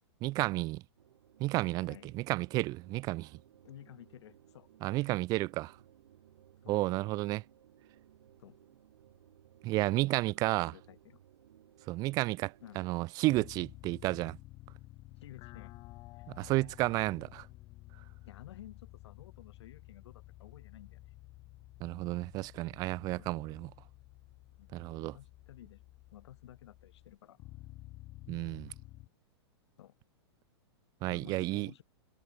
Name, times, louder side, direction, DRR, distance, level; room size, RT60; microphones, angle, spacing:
voice 1, 0.2-0.8 1.4-3.4 4.8-5.8 6.7-7.4 9.6-10.7 11.9-14.4 16.3-17.5 21.8-23.7 24.7-25.1 28.3-28.7 31.0-31.7, right 20 dB, 25° right, 0.4 m, -32 dB
sound 1, 1.0-13.0, right 11 dB, 75° right, 5.8 m, -61 dB
voice 2, 3.6-4.7 5.0-5.1 6.6-7.1 8.4-8.6 10.3-11.2 12.6-12.8 15.2-15.7 16.1-16.3 18.2-21.1 23.2-23.3 24.6-25.8 26.1-27.4 29.8-30.0 31.1-31.8, left 12 dB, 70° left, 2.1 m, -54 dB
sound 2, 13.3-29.1, left 19 dB, 30° left, 0.7 m, -52 dB
hypercardioid pair, 145°, 15 cm